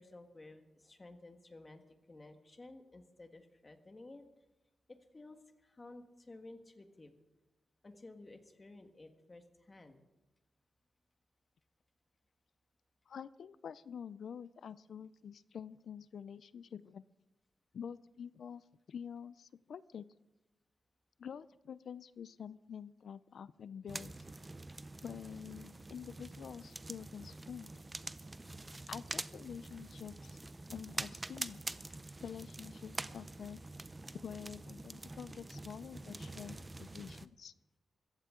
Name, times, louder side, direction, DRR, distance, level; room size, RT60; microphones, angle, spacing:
voice 1, 0.0-4.2 4.9-7.1 7.8-10.0, left 2 dB, 25° left, 6 dB, 1.6 m, -54 dB
voice 2, 13.1-17.0 17.7-20.0 21.2-24.2 25.0-27.7 28.9-30.4 30.7-31.6 32.2-33.6 34.2-37.5, left 7 dB, 70° left, 17 dB, 0.5 m, -47 dB
sound 1, 23.9-37.3, right 2 dB, 20° right, 0.6 m, -46 dB
24.5 x 15.0 x 3.8 m, 1.0 s
wide cardioid pair, 140°, 0 cm